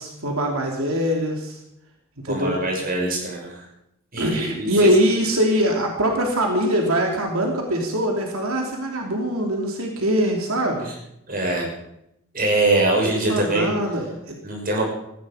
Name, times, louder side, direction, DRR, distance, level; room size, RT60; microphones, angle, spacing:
voice 1, 0.0-1.6 2.2-2.6 4.2-10.9 13.0-14.3, equal, 90° right, 1 dB, 3.1 m, -22 dB
voice 2, 2.3-3.6 4.1-4.9 10.8-10.9 11.3-11.7 12.3-13.7 14.4-14.9, right 2 dB, 40° right, 0 dB, 6.0 m, -23 dB
18.5 x 15.0 x 5.1 m, 0.80 s
head